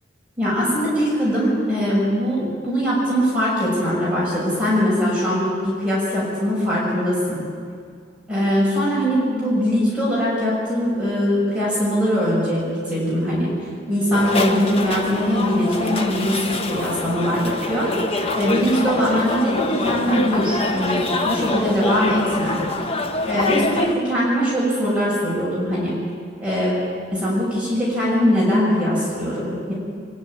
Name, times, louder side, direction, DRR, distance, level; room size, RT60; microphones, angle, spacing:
voice 1, 0.4-7.4 8.3-13.5 13.9-17.9 18.3-22.6 23.2-26.0 26.4-26.8 27.1-29.7, equal, 5° right, -8 dB, 6.6 m, -21 dB
sound 1, 14.1-23.9, left 2 dB, 30° left, 1.3 m, -25 dB
24.0 x 12.0 x 9.6 m, 2.2 s
head